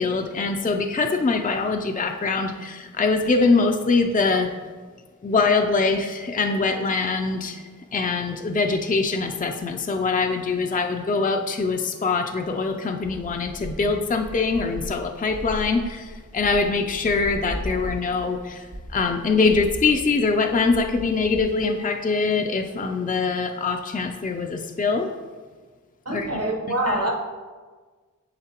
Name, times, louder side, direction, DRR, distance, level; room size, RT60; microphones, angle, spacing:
voice 1, 0.0-4.5 5.2-25.1 26.1-26.4 26.9-27.0, left 4 dB, 25° left, 4 dB, 0.4 m, -23 dB
sound 1, 13.0-21.4, equal, 65° right, 1.9 m, -37 dB
voice 2, 26.0-27.1, right 1 dB, 50° right, 1 dB, 1.1 m, -25 dB
10.5 x 4.0 x 2.9 m, 1.4 s
wide cardioid pair, 45°, 32 cm